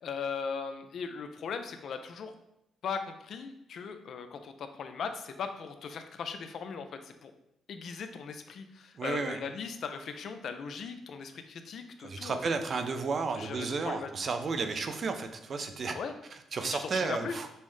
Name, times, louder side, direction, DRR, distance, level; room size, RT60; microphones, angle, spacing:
voice 1, 0.0-2.3 2.8-7.3 7.7-12.4 13.4-14.1 15.9-16.2 16.7-17.4, left 6 dB, 65° left, 8 dB, 0.4 m, -38 dB
voice 2, 9.0-9.4 12.0-16.0 16.5-17.5, right 4 dB, 45° right, 7 dB, 0.4 m, -32 dB
5.4 x 2.0 x 3.2 m, 0.85 s
cardioid pair, 90°, 0 cm